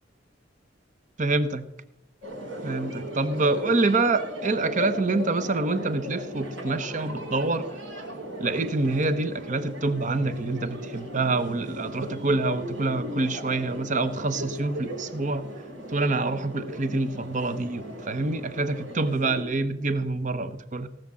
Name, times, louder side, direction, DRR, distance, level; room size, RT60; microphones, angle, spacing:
voice 1, 1.2-1.6 2.6-7.7 8.4-15.4 15.9-20.9, right 3 dB, 40° right, 11 dB, 0.8 m, -26 dB
sound 1, 2.2-19.4, equal, 80° right, 5.4 m, -37 dB
18.0 x 6.6 x 7.5 m, 0.89 s
head